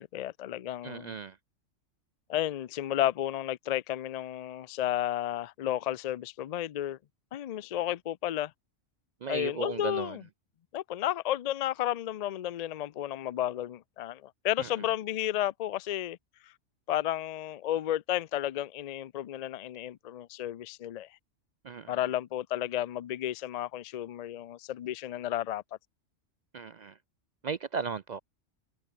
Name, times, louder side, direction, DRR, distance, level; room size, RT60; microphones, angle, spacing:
voice 1, 0.0-1.2 2.3-7.0 7.3-8.5 9.3-10.2 10.7-16.2 16.4-16.5 16.9-21.1 21.9-25.6, left 12 dB, 75° left, 0.3 m, -32 dB
voice 2, 0.8-1.4 9.2-10.2 14.6-14.7 21.6-22.0 26.5-27.0 27.4-28.2, right 6 dB, 55° right, 0.5 m, -36 dB
omnidirectional pair, 1.3 m